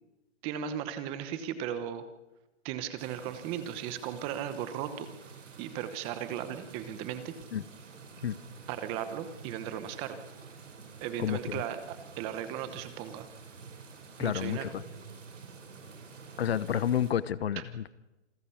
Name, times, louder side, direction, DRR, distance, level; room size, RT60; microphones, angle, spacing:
voice 1, 0.4-2.0 2.6-5.1 5.6-7.3 8.7-10.2 11.0-13.3 14.2-14.7 17.6-17.7, right 10 dB, 15° right, 11 dB, 1.0 m, -36 dB
sound 1, 3.0-17.1, right 5 dB, 80° right, 5.4 m, -49 dB
voice 2, 11.2-11.6 14.2-14.8 16.4-17.9, left 9 dB, 55° left, 18 dB, 1.0 m, -30 dB
27.0 x 14.0 x 8.5 m, 1.1 s
hypercardioid pair, 165°, 36 cm